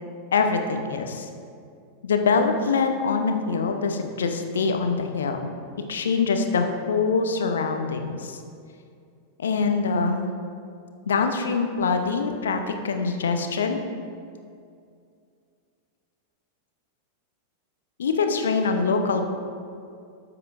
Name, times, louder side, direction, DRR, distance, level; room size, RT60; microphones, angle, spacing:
voice 1, 0.3-1.3 2.0-5.5 5.9-8.4 9.4-10.4 11.1-13.8 18.0-19.3, left 4 dB, 65° left, 6 dB, 0.7 m, -24 dB
12.5 x 7.8 x 2.5 m, 2.3 s
figure-of-eight pair, 90°, 0 cm